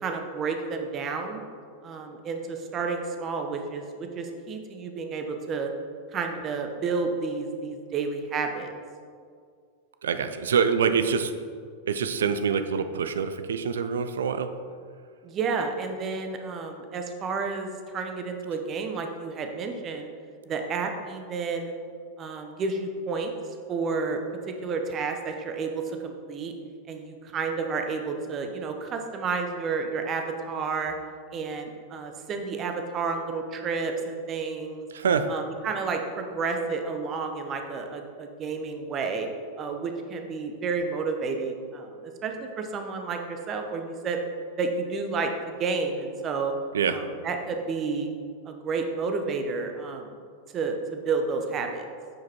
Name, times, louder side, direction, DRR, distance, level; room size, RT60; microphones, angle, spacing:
voice 1, 0.0-1.4 1.8-5.7 6.1-8.7 15.2-20.1 20.5-21.7 22.2-23.3 23.7-24.2 24.6-26.5 26.9-30.9 31.3-34.9 35.3-39.3 39.6-42.0 42.2-44.2 44.6-46.5 46.9-48.1 48.5-50.2 50.5-51.9, right 4 dB, 30° right, 4 dB, 0.9 m, -31 dB
voice 2, 10.0-11.3 11.9-14.5 34.9-35.3 46.7-47.0, right 6 dB, 65° right, 9 dB, 0.5 m, -25 dB
9.3 x 5.0 x 4.4 m, 2.1 s
figure-of-eight pair, 90°, 0 cm